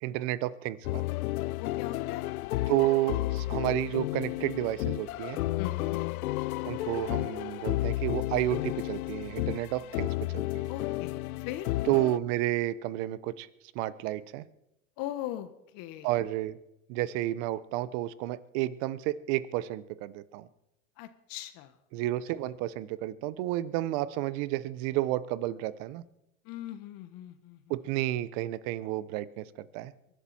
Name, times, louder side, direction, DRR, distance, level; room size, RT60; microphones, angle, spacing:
voice 1, 0.0-1.0 2.7-5.4 6.6-10.6 11.8-13.5 13.7-14.4 16.0-16.6 16.9-20.5 21.9-26.0 27.7-29.9, right 15 dB, 55° right, 18 dB, 1.0 m, -31 dB
sound 1, 0.8-12.2, left 17 dB, 85° left, 0.5 m, -32 dB
voice 2, 1.6-2.3 5.6-6.0 10.7-11.7 15.0-15.5 15.7-16.1 21.0-21.7 26.5-27.6, left 13 dB, 50° left, 10 dB, 1.7 m, -39 dB
23.0 x 12.0 x 4.5 m, 0.87 s
hypercardioid pair, 105°, 42 cm